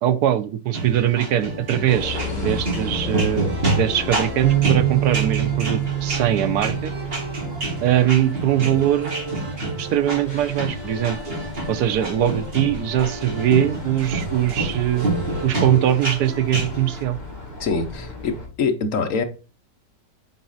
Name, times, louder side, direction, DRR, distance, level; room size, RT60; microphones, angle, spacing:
voice 1, 0.0-6.9 7.8-9.1 9.8-11.2 11.7-15.1 15.4-17.2, right 11 dB, 70° right, 1.2 m, -21 dB
sound 1, 0.7-17.0, right 2 dB, 35° right, 2.0 m, -28 dB
sound 2, 1.9-18.5, left 3 dB, 25° left, 2.3 m, -36 dB
Bass guitar, 4.4-10.7, right 14 dB, 90° right, 1.4 m, -27 dB
voice 2, 17.6-19.2, left 4 dB, 55° left, 1.1 m, -24 dB
8.1 x 4.0 x 3.9 m
omnidirectional pair, 2.0 m